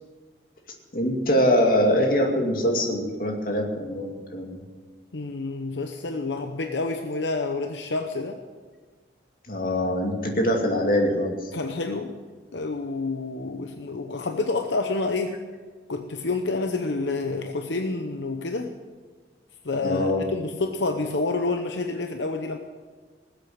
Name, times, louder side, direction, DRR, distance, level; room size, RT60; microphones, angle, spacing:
voice 1, 0.9-4.6 9.5-11.4 19.8-20.2, equal, 50° left, 1 dB, 2.4 m, -23 dB
voice 2, 5.1-8.4 11.5-12.2 12.5-15.4 15.9-18.7 19.6-22.6, left 3 dB, 80° left, 6 dB, 0.9 m, -28 dB
19.5 x 8.2 x 7.9 m, 1.5 s
head